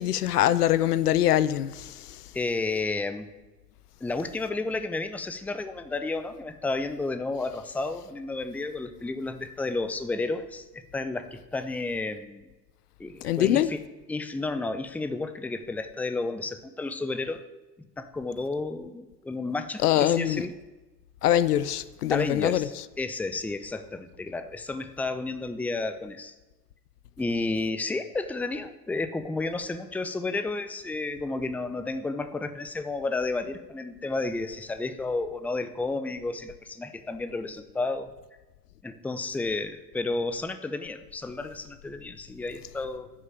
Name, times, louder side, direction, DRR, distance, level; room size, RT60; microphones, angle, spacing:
voice 1, 0.0-2.2 13.2-13.7 19.8-20.5 21.2-22.9, left 12 dB, 65° left, 0.7 m, -24 dB
voice 2, 2.3-3.3 4.0-12.4 13.0-13.8 14.1-17.4 18.0-20.5 22.1-26.3 27.2-38.1 38.8-43.1, left 3 dB, 5° left, 0.6 m, -32 dB
11.5 x 6.5 x 8.8 m
figure-of-eight pair, 75°, 50 cm